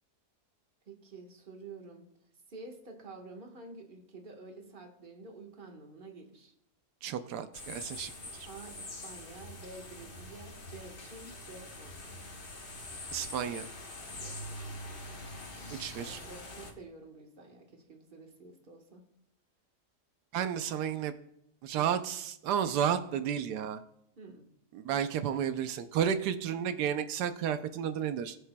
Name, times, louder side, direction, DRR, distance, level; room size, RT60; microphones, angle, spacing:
voice 1, 0.8-2.1 2.5-6.5 8.5-12.1 14.2-14.4 15.7-19.0 24.2-24.5, right 3 dB, 35° right, 2 dB, 1.4 m, -49 dB
voice 2, 7.0-8.1 13.1-13.7 15.7-16.2 20.3-21.1 21.6-23.8 24.7-28.4, right 9 dB, 85° right, 10 dB, 1.2 m, -32 dB
sound 1, 7.5-16.7, left 1 dB, 35° left, 1.2 m, -44 dB
20.0 x 6.7 x 2.2 m, 0.75 s
omnidirectional pair, 1.7 m